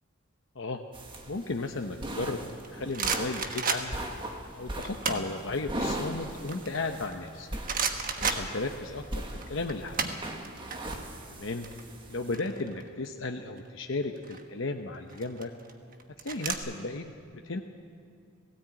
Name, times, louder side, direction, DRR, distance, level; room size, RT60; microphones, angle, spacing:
sound 1, 0.9-12.3, right 1 dB, 25° right, 1.7 m, -39 dB
voice 1, 1.3-4.0 4.5-7.5 8.1-10.2 11.3-11.7 12.1-15.5 16.2-17.6, left 3 dB, 65° left, 4 dB, 0.9 m, -35 dB
sound 2, 2.6-4.2 4.8-5.4 5.7-7.3 7.7-9.1 9.3-10.8 11.0-11.2 11.5-13.1 14.0-14.4 15.1-16.5, right 5 dB, 40° right, 1.3 m, -32 dB
17.5 x 17.0 x 8.9 m, 2.3 s
head